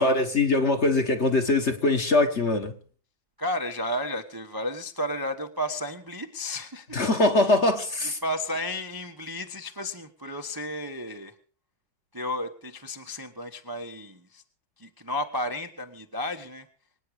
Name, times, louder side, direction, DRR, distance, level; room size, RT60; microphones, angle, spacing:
voice 1, 0.0-2.7 6.9-8.2, left 2 dB, 35° left, 1.6 m, -22 dB
voice 2, 3.4-7.0 8.2-11.3 12.1-14.4 14.8-16.7, left 1 dB, 15° right, 0.8 m, -33 dB
25.0 x 9.5 x 4.9 m
omnidirectional pair, 2.1 m